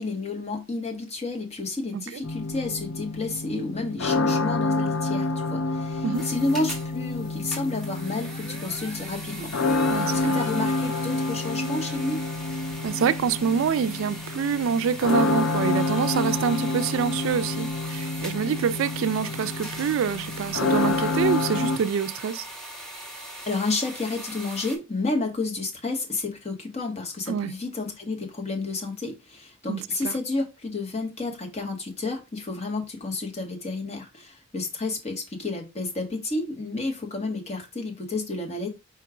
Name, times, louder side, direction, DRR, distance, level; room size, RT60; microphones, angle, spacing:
voice 1, 0.0-9.5 10.1-12.2 23.5-38.7, left 3 dB, 30° left, 1.0 m, -31 dB
sound 1, 2.2-21.8, left 2 dB, 70° left, 0.5 m, -28 dB
sound 2, 6.1-24.8, right 1 dB, 5° left, 1.0 m, -40 dB
voice 2, 9.9-10.4 12.8-22.5 27.3-27.5 29.7-30.1, right 7 dB, 75° right, 0.3 m, -26 dB
4.4 x 2.3 x 4.8 m
head